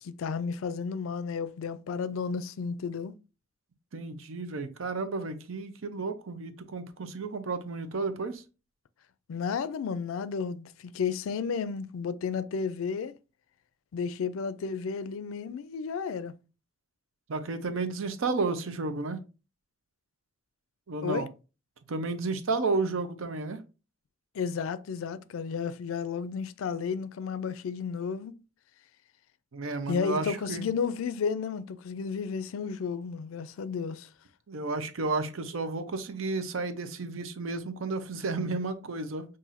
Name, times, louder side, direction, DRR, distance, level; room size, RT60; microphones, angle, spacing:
voice 1, 0.0-3.1 9.3-13.1 13.9-16.3 21.0-21.3 24.3-28.4 29.9-34.1, left 5 dB, 85° left, 0.3 m, -32 dB
voice 2, 3.9-8.4 17.3-19.2 20.9-21.3 21.9-23.6 29.5-30.6 34.5-39.2, right 3 dB, 85° right, 0.6 m, -32 dB
5.6 x 2.6 x 2.5 m
head